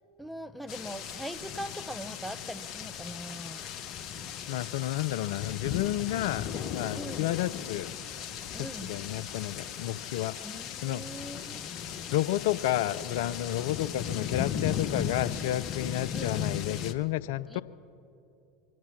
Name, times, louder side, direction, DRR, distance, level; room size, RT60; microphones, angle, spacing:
voice 1, 0.2-3.6 6.9-7.3 8.5-8.9 10.4-11.7 16.1-16.4 17.5-17.6, equal, ahead, 0.7 m, -41 dB
sound 1, 0.7-16.9, left 8 dB, 45° left, 0.8 m, -37 dB
voice 2, 4.5-7.9 8.5-11.2 12.1-17.6, left 14 dB, 65° left, 0.3 m, -31 dB
24.0 x 9.3 x 6.0 m
figure-of-eight pair, 80°, 0 cm